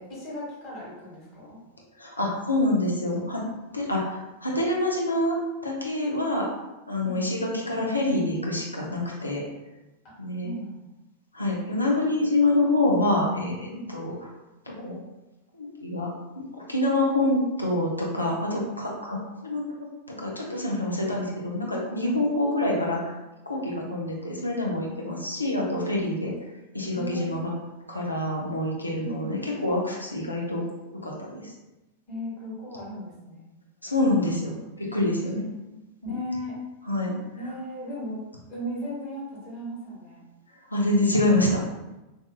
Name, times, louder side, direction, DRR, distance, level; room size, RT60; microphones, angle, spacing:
voice 1, 0.0-1.6 7.0-7.2 10.0-10.1 10.4-10.8 13.7-13.9 26.9-27.3 29.0-29.4 32.1-33.5 35.3-36.6 37.3-38.2 38.5-40.2, equal, 40° left, -7 dB, 1.2 m, -36 dB
voice 2, 2.0-3.4 3.7-5.4 5.6-6.5 6.9-9.4 10.2-10.5 11.3-14.1 14.7-15.0 15.5-16.1 16.4-19.6 20.1-23.1 23.5-26.3 26.7-27.5 27.9-30.6 31.0-31.5 33.8-35.4 36.9-37.2 40.7-41.6, left 1 dB, 85° left, -3 dB, 0.6 m, -26 dB
2.6 x 2.4 x 2.4 m, 1.0 s
figure-of-eight pair, 90°, 0 cm